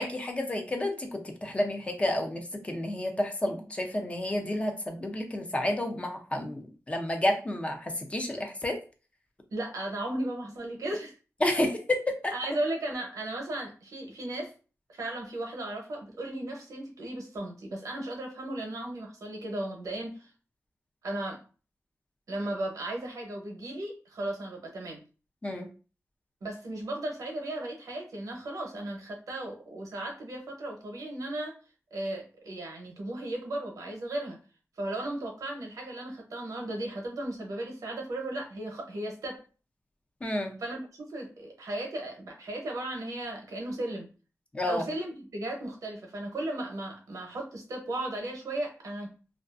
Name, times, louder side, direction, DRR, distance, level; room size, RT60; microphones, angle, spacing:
voice 1, 0.0-8.8 11.4-12.3 25.4-25.7 40.2-40.5 44.5-44.9, left 1 dB, 20° left, 3 dB, 0.4 m, -30 dB
voice 2, 9.5-11.1 12.3-14.5 14.9-20.3 21.0-21.4 22.3-25.0 26.4-31.6 31.9-34.4 34.8-39.4 40.6-44.1 44.6-49.1, right 1 dB, 85° right, 1 dB, 0.7 m, -36 dB
2.4 x 2.3 x 2.4 m, 0.35 s
wide cardioid pair, 140°, 6 cm